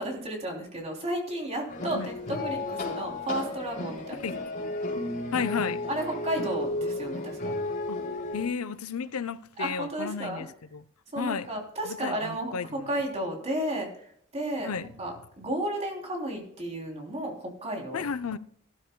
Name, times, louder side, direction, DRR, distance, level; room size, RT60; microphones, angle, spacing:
voice 1, 0.0-4.4 5.9-7.5 9.6-10.4 11.1-18.0, right 1 dB, 30° right, 3.1 m, -33 dB
sound 1, 1.7-8.5, left 2 dB, 40° left, 4.1 m, -33 dB
voice 2, 5.3-5.8 7.9-8.0 8.3-10.8 11.2-12.9 14.6-14.9 17.9-18.4, left 6 dB, 90° left, 0.6 m, -33 dB
15.0 x 13.0 x 2.2 m
head